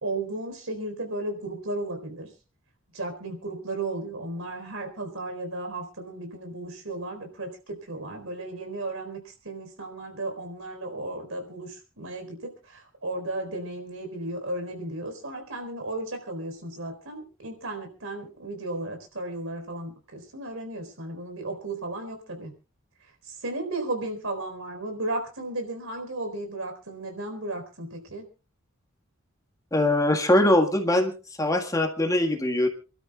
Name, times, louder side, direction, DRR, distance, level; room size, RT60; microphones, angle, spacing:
voice 1, 0.0-2.3 2.9-22.5 23.2-28.3, right 2 dB, 80° right, 5 dB, 4.3 m, -34 dB
voice 2, 29.7-31.1 31.4-32.7, left 1 dB, 15° left, 3 dB, 1.7 m, -22 dB
28.5 x 12.5 x 2.4 m, 0.33 s
head